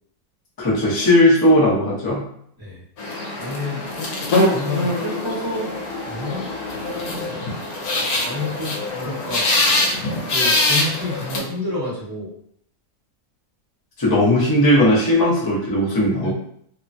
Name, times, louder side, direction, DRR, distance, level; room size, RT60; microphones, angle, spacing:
voice 1, 0.6-2.3 14.0-16.3, left 1 dB, 30° left, -6 dB, 0.4 m, -17 dB
voice 2, 2.6-4.2 4.4-5.7 6.0-6.5 8.2-9.5 10.2-12.3 16.2-16.3, left 2 dB, 20° right, -8 dB, 0.7 m, -29 dB
sound 1, 3.0-11.4, left 2 dB, 75° left, 1.1 m, -23 dB
2.9 x 2.2 x 2.6 m, 0.67 s
omnidirectional pair, 1.7 m